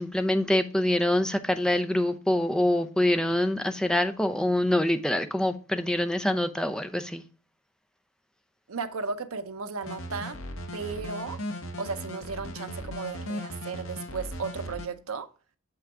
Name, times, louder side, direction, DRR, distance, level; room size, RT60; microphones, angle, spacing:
voice 1, 0.0-7.2, left 1 dB, 5° left, 0.5 m, -25 dB
voice 2, 8.7-10.4 10.7-11.4 11.8-15.3, right 4 dB, 80° right, 0.7 m, -35 dB
sound 1, 9.8-14.9, equal, 70° left, 1.2 m, -37 dB
6.8 x 5.7 x 3.6 m
head